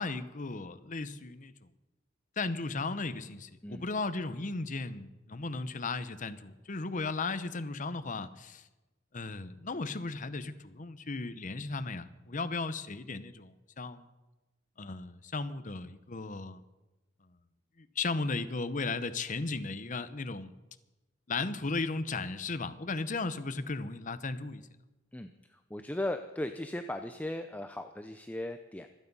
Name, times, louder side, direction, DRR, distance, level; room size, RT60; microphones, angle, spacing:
voice 1, 0.0-1.5 2.4-8.7 9.1-14.1 14.8-16.6 17.8-20.5 21.3-24.6, left 3 dB, 40° left, 12 dB, 0.9 m, -36 dB
voice 2, 25.1-28.9, left 1 dB, 10° left, 7 dB, 0.6 m, -37 dB
25.0 x 9.6 x 5.5 m, 1.1 s
head